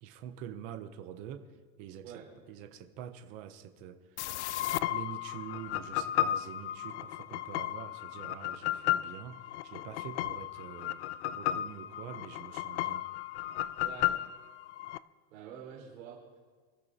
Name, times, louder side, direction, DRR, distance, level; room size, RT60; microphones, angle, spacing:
voice 1, 0.0-4.3 4.7-13.1, right 9 dB, 20° right, 0.4 m, -46 dB
voice 2, 2.0-2.3 13.8-14.2 15.3-16.4, right 8 dB, 65° right, 4.4 m, -47 dB
sound 1, 4.2-15.0, left 13 dB, 55° left, 0.4 m, -34 dB
27.0 x 13.5 x 2.7 m
supercardioid pair, 170°, 43 cm